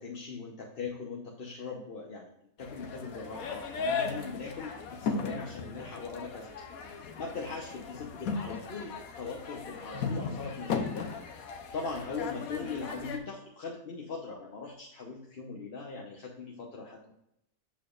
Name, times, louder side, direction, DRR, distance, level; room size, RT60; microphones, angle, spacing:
voice 1, 0.0-2.3 2.6-6.5 7.2-11.1 11.7-17.1, left 4 dB, 45° left, -2 dB, 0.9 m, -40 dB
sound 1, 2.6-13.2, left 5 dB, 65° left, 1.2 m, -37 dB
7.7 x 6.4 x 2.4 m, 0.80 s
omnidirectional pair, 1.7 m